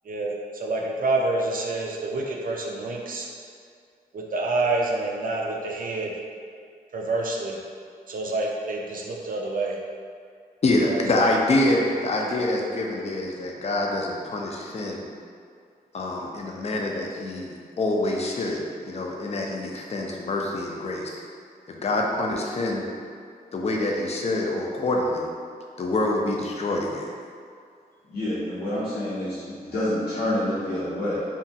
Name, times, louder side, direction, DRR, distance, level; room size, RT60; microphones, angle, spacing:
voice 1, 0.1-3.3 4.1-6.2 6.9-7.6 8.1-9.8 10.9-11.0, right 2 dB, 60° right, -1 dB, 0.4 m, -27 dB
voice 2, 10.6-15.0 15.9-21.2 21.7-22.9 23.5-25.3 25.8-27.1, left 2 dB, 40° left, -1 dB, 0.4 m, -26 dB
voice 3, 28.1-31.2, left 1 dB, 75° left, -12 dB, 0.7 m, -28 dB
2.8 x 2.4 x 2.6 m, 2.2 s
cardioid pair, 65°, 16 cm